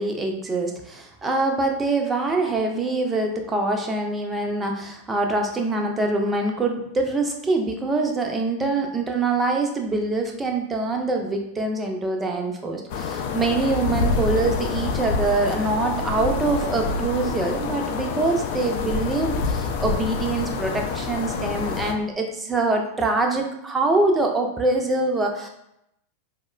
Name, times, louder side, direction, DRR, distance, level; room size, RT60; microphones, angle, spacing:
voice 1, 0.0-25.5, right 2 dB, 15° right, 2 dB, 0.4 m, -24 dB
sound 1, 12.9-21.9, left 4 dB, 50° left, 0.3 m, -27 dB
4.1 x 2.0 x 2.3 m, 0.81 s
figure-of-eight pair, 90°, 0 cm